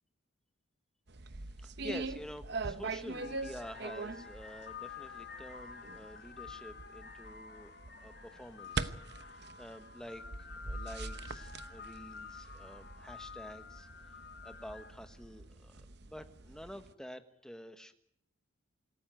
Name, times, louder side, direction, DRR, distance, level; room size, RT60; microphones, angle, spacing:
sound 1, 1.1-16.9, right 3 dB, 55° right, 0.9 m, -43 dB
voice 1, 1.6-7.7 8.0-10.2 10.6-13.9 14.4-17.9, equal, 5° left, 8 dB, 1.3 m, -49 dB
sound 2, 2.4-2.7 3.1-15.2, left 5 dB, 50° left, 1.8 m, -50 dB
26.0 x 14.5 x 9.3 m, 0.74 s
head